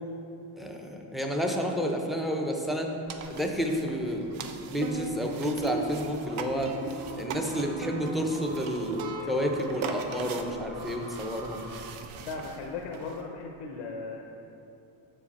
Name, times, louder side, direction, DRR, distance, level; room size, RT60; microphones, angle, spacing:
voice 1, 0.6-2.9 3.3-6.7 7.2-11.6, equal, ahead, 1 dB, 0.5 m, -30 dB
sound 1, 3.1-13.2, right 4 dB, 90° right, 0.6 m, -39 dB
sound 2, 5.0-11.9, right 2 dB, 65° right, 1.4 m, -43 dB
voice 2, 12.3-14.2, left 4 dB, 80° left, 0 dB, 0.7 m, -37 dB
6.3 x 4.9 x 4.1 m, 2.8 s
cardioid pair, 110°, 47 cm